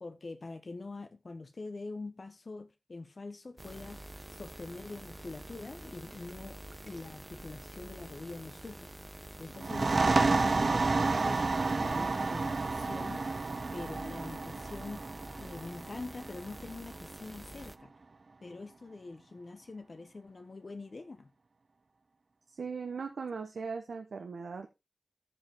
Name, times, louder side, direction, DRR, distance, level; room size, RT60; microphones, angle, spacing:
voice 1, 0.0-8.9 9.4-11.4 11.8-13.3 13.7-15.1 15.4-17.9 18.4-21.3, left 3 dB, 45° left, 1.1 m, -44 dB
sound 1, 3.6-17.8, right 1 dB, 20° right, 0.7 m, -48 dB
sound 2, 9.6-17.0, right 3 dB, 50° right, 0.5 m, -30 dB
voice 2, 22.5-24.7, right 5 dB, 90° right, 1.2 m, -39 dB
14.5 x 5.1 x 3.7 m
wide cardioid pair, 110°, 0 cm